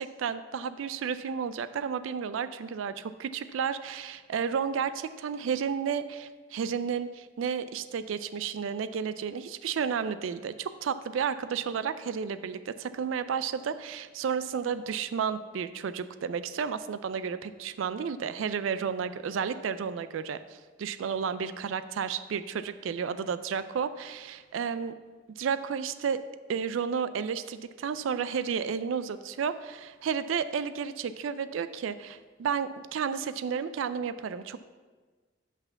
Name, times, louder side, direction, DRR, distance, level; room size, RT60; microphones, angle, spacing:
voice 1, 0.0-24.9 25.4-26.2 26.5-34.6, right 7 dB, 85° right, 13 dB, 0.4 m, -32 dB
5.9 x 5.7 x 7.0 m, 1.4 s
head